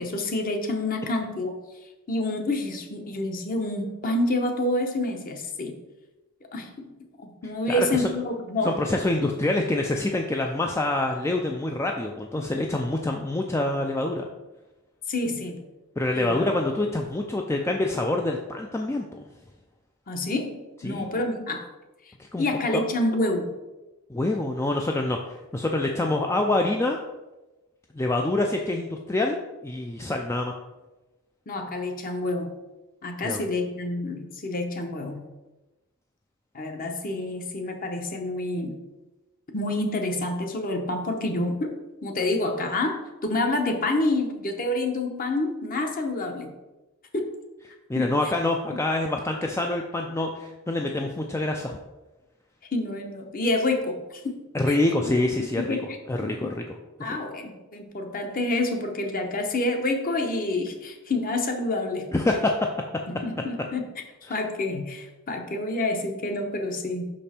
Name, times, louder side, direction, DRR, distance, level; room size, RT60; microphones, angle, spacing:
voice 1, 0.0-1.6 2.1-5.8 6.5-6.9 7.2-8.8 15.1-15.6 16.2-16.5 20.1-21.6 22.4-23.5 31.5-32.5 33.0-35.2 36.5-38.8 39.5-41.7 42.0-46.5 47.1-47.3 47.9-48.1 52.7-54.4 54.7-55.1 55.4-56.5 57.0-62.1 63.1-63.9 64.3-67.0, left 2 dB, 40° left, 4 dB, 0.9 m, -28 dB
voice 2, 7.7-8.1 8.6-14.3 16.0-19.2 20.8-21.1 22.2-22.4 22.7-22.8 24.1-27.0 27.9-29.4 29.6-30.5 33.2-33.4 47.9-51.8 54.5-55.8 56.1-56.6 57.0-57.2 62.1-62.7 64.3-64.4, left 2 dB, 10° left, 2 dB, 0.3 m, -26 dB
5.9 x 5.3 x 4.3 m, 1.1 s
head